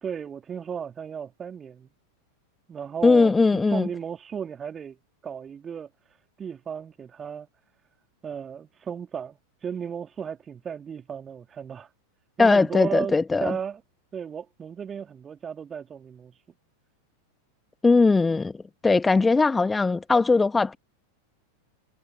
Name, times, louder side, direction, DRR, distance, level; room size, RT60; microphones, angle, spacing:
voice 1, 0.0-1.9 2.7-5.0 5.2-5.9 6.4-7.5 8.2-11.9 12.4-13.1 13.4-13.8 14.1-16.3, right 7 dB, 20° right, 2.2 m, -35 dB
voice 2, 3.0-3.9 12.4-13.5 17.8-18.5 18.8-20.8, left 3 dB, 10° left, 1.4 m, -19 dB
figure-of-eight pair, 90°, 0 cm